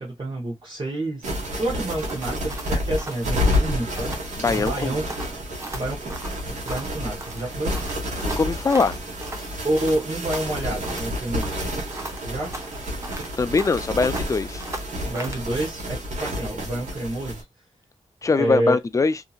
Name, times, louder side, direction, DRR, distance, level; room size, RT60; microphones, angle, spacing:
voice 1, 0.0-4.1 4.4-5.0 5.7-6.2 6.5-7.8 9.6-11.6 12.2-12.6 15.0-17.4 18.4-18.8, right 1 dB, 40° right, 1.1 m, -28 dB
sound 1, 1.2-17.4, left 1 dB, 80° right, 1.3 m, -29 dB
sound 2, 2.0-4.3 4.5-4.8 5.1-7.0 7.2-9.5 9.8-11.1 11.4-13.9 14.1-15.5, right 1 dB, 25° right, 0.8 m, -38 dB
voice 2, 4.4-5.0 8.2-8.9 13.4-14.6 18.2-19.2, left 4 dB, 25° left, 0.4 m, -22 dB
2.8 x 2.7 x 2.4 m
cardioid pair, 75°, 12 cm